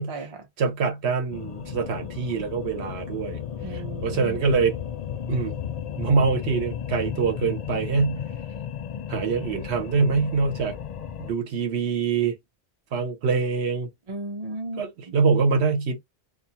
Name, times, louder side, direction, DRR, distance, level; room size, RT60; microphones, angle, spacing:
voice 1, 0.0-0.4 3.6-4.4 14.1-15.2, right 2 dB, 35° right, 0.5 m, -36 dB
voice 2, 0.6-3.4 3.7-4.8 5.3-5.5 6.0-8.2 9.1-10.8 11.2-12.4 12.9-13.9 14.8-16.0, right 5 dB, 75° right, 1.0 m, -24 dB
sound 1, 1.3-11.3, left 9 dB, 55° left, 0.5 m, -34 dB
2.4 x 2.4 x 2.7 m
omnidirectional pair, 1.1 m